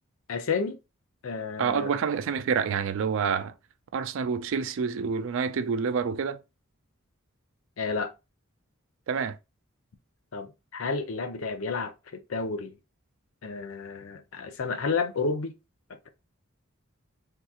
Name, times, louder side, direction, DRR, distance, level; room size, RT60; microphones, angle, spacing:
voice 1, 0.3-0.8 1.2-1.9 7.8-8.1 10.3-12.8 13.4-15.5 15.9-16.1, left 4 dB, 70° left, 0.6 m, -31 dB
voice 2, 1.6-3.5 3.9-6.4 9.1-9.4, right 6 dB, 65° right, 0.4 m, -28 dB
3.5 x 2.8 x 2.3 m
head